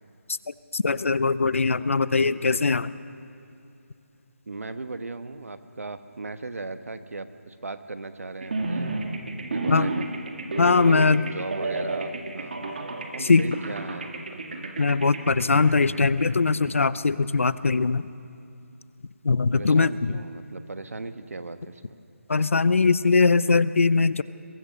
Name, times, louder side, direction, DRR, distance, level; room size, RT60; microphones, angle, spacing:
voice 1, 0.7-2.9 9.7-9.9 10.6-11.2 13.2-13.6 14.8-18.1 19.2-20.1 22.3-24.2, left 4 dB, 65° left, 17 dB, 0.6 m, -21 dB
voice 2, 4.5-8.9 9.5-10.1 10.8-11.0 11.2-12.6 13.1-14.4 19.5-21.9, right 3 dB, 80° right, 10 dB, 1.3 m, -37 dB
sound 1, 8.4-16.8, right 3 dB, 45° right, 2.0 m, -32 dB
22.0 x 17.0 x 6.8 m, 2.7 s
hypercardioid pair, 175°, 8 cm